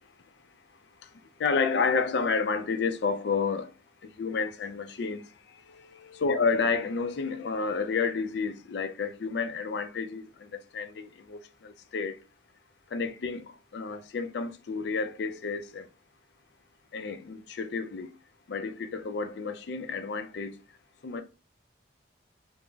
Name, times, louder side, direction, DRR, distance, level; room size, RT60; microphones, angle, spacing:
voice 1, 1.4-3.7 4.0-5.2 5.7-12.2 12.9-13.4 13.7-15.9 16.9-18.1 18.5-20.6 21.0-21.2, left 5 dB, 60° left, 0.4 m, -30 dB
3.8 x 2.0 x 3.4 m
head